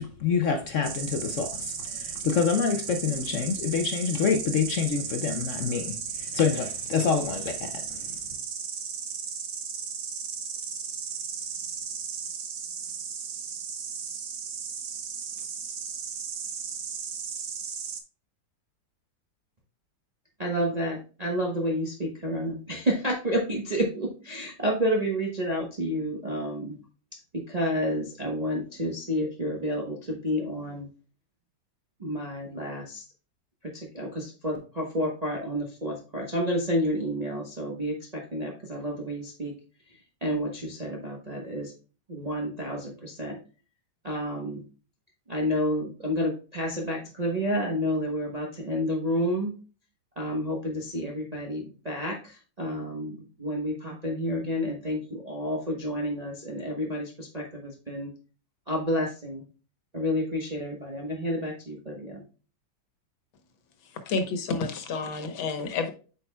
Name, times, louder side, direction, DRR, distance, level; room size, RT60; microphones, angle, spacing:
voice 1, 0.0-8.2, left 6 dB, 70° left, 0.7 m, -27 dB
Insect, 0.8-18.0, right 6 dB, 55° right, 1.3 m, -35 dB
voice 2, 20.4-26.8 27.1-30.9 32.0-33.0 33.6-39.5 40.2-41.7 42.1-43.4 44.0-44.6 45.3-49.5 50.2-58.1 58.7-59.4 59.9-62.2, equal, 25° right, 0.9 m, -30 dB
voice 3, 64.1-65.9, left 4 dB, 85° left, 1.9 m, -29 dB
8.5 x 5.3 x 2.2 m
omnidirectional pair, 2.1 m